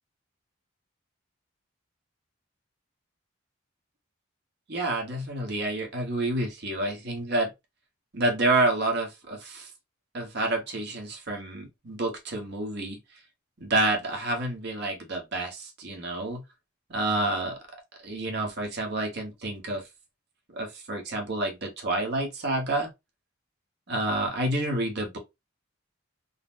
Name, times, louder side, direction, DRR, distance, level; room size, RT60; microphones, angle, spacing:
voice 1, 4.7-7.5 8.1-9.7 10.1-13.0 13.6-16.4 16.9-17.6 18.0-19.8 20.5-22.9 23.9-25.2, right 2 dB, 55° right, 0.9 m, -29 dB
3.8 x 2.1 x 2.4 m
head